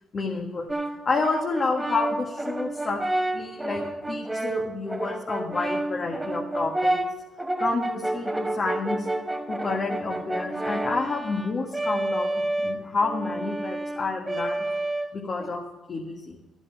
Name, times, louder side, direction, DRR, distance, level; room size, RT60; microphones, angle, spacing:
voice 1, 0.1-0.7 1.0-3.0 3.3-7.0 7.6-9.1 9.5-14.7 15.1-15.6 15.9-16.4, left 3 dB, 40° left, -1 dB, 1.7 m, -29 dB
Brass instrument, 0.7-15.5, right 1 dB, 10° right, 1.1 m, -30 dB
13.0 x 8.1 x 5.9 m, 1.1 s
cardioid pair, 90°, 0 cm